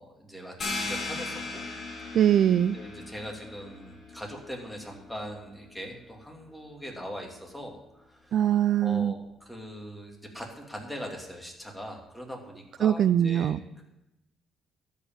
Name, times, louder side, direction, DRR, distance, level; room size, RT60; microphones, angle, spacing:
voice 1, 0.0-1.6 2.7-8.4 8.8-13.8, equal, 5° left, 0 dB, 2.6 m, -41 dB
sound 1, 0.6-6.0, left 3 dB, 50° left, 4.1 m, -38 dB
voice 2, 2.1-2.8 8.3-9.1 12.8-13.6, right 10 dB, 65° right, 15 dB, 0.3 m, -22 dB
13.0 x 5.5 x 7.3 m, 0.92 s
cardioid pair, 100°, 0 cm